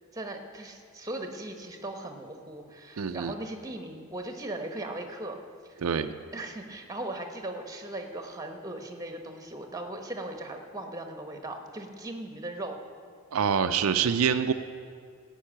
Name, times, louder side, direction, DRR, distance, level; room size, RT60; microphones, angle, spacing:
voice 1, 0.1-5.4 5.7-5.8 6.3-12.8, right 1 dB, 15° right, 5 dB, 1.1 m, -38 dB
voice 2, 3.0-3.3 5.8-6.1 13.3-14.5, right 7 dB, 80° right, 9 dB, 0.5 m, -25 dB
16.5 x 5.5 x 8.6 m, 2.1 s
head